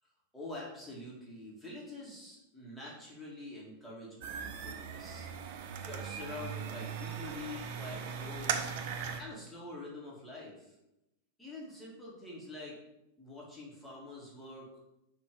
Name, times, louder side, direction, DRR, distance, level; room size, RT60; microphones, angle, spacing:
voice 1, 0.3-5.3 5.8-8.7 9.2-10.7 11.4-12.7 13.2-14.8, left 2 dB, 5° left, -6 dB, 2.0 m, -46 dB
sound 1, 4.2-9.2, right 7 dB, 50° right, 0.6 m, -39 dB
5.9 x 3.1 x 5.1 m, 0.90 s
figure-of-eight pair, 90°, 0 cm